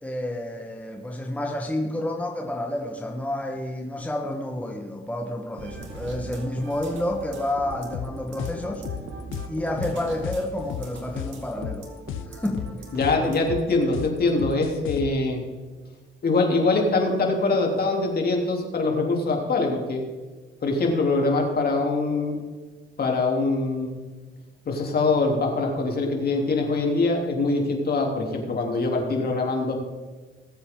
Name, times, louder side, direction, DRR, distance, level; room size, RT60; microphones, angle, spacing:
voice 1, 0.0-8.8 9.5-11.9 12.3-12.8 13.2-13.3 14.5-14.6, left 1 dB, 5° left, 1 dB, 1.4 m, -30 dB
sound 1, 5.6-13.6, right 4 dB, 75° right, 2.5 m, -40 dB
sound 2, 7.7-15.1, left 12 dB, 90° left, 0.6 m, -34 dB
voice 2, 12.9-15.4 16.2-20.0 20.6-22.4 23.0-24.0 24.6-29.7, left 3 dB, 50° left, 1 dB, 3.3 m, -23 dB
20.0 x 8.0 x 3.8 m, 1.4 s
cardioid pair, 90°, 20 cm